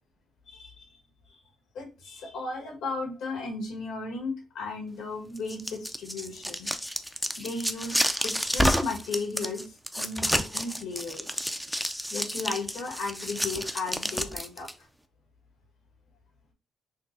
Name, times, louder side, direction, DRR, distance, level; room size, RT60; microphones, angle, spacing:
voice 1, 0.5-0.9 1.3-1.4 1.7-6.7 7.4-11.4 12.1-14.7, left 3 dB, 80° left, 0 dB, 1.5 m, -35 dB
sound 1, 5.4-14.7, equal, ahead, 0.4 m, -30 dB
5.8 x 2.1 x 2.7 m, 0.32 s
cardioid pair, 90°, 0 cm